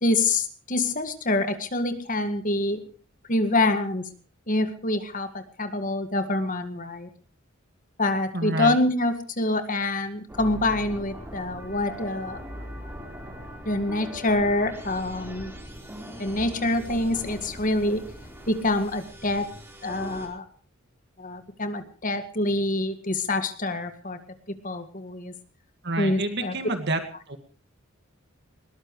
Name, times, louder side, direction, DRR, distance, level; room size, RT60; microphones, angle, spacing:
voice 1, 0.0-2.8 3.3-4.1 4.5-5.3 5.6-7.1 8.0-12.4 13.7-15.5 16.2-18.0 18.5-19.5 19.8-20.4 21.2-24.2 24.6-25.3 26.0-26.5, left 2 dB, 40° left, 9 dB, 2.0 m, -26 dB
voice 2, 8.3-8.8 25.8-27.0 27.3-27.4, right 2 dB, 50° right, 6 dB, 2.1 m, -28 dB
sound 1, 10.3-20.3, equal, 10° right, 4.3 m, -40 dB
21.0 x 20.0 x 3.2 m, 0.38 s
head